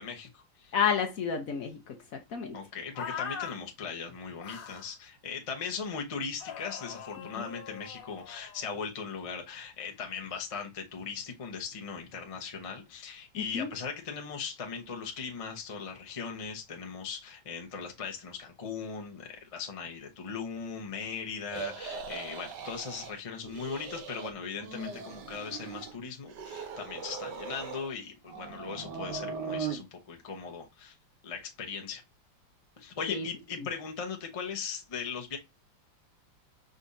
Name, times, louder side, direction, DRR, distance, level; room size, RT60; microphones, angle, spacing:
voice 1, 0.0-0.7 2.5-30.9 31.2-32.0 32.8-35.4, left 6 dB, 40° left, 0.5 m, -39 dB
voice 2, 0.7-2.6 7.4-7.5 13.4-13.7 33.1-33.3, left 7 dB, 60° left, 1.0 m, -31 dB
sound 1, 3.0-3.6 4.4-4.9 6.4-8.7, left 7 dB, 75° left, 1.6 m, -41 dB
sound 2, 21.5-23.1 23.4-24.3 24.6-26.0 26.3-27.9 28.3-29.8, right 5 dB, 65° right, 1.4 m, -39 dB
5.1 x 3.4 x 2.6 m
omnidirectional pair, 2.1 m